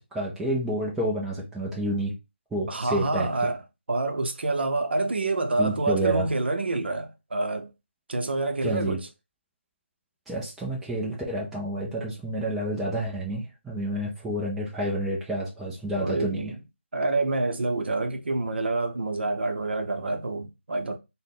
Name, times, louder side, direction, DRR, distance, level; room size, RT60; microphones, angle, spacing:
voice 1, 0.1-2.1 2.5-3.3 5.6-6.3 8.6-9.0 10.3-16.5, right 1 dB, 5° right, 0.4 m, -29 dB
voice 2, 2.7-3.6 3.9-7.7 8.1-9.1 16.0-16.6 16.9-21.0, right 2 dB, 60° right, 0.6 m, -27 dB
3.7 x 2.1 x 3.4 m
figure-of-eight pair, 160°, 6 cm